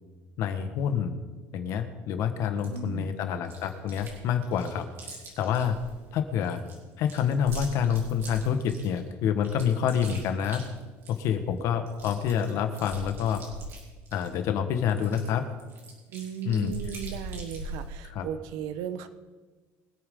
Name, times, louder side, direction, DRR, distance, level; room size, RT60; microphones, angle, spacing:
voice 1, 0.4-1.1 1.5-4.8 5.4-5.8 6.1-6.6 7.0-10.6 11.1-13.4 14.1-15.4 16.4-16.7 18.1-18.3, left 8 dB, 60° left, 7 dB, 1.5 m, -27 dB
Chewing mastication, 2.6-2.8 3.5-4.2 4.4-5.9 6.4-9.0 9.4-11.3 11.6-11.7 11.9-14.3 14.9-17.9, right 1 dB, 40° right, 4.4 m, -41 dB
voice 2, 2.6-3.1 16.1-19.1, right 9 dB, 75° right, 11 dB, 1.1 m, -36 dB
23.5 x 9.1 x 3.8 m, 1.3 s
cardioid pair, 145°, 6 cm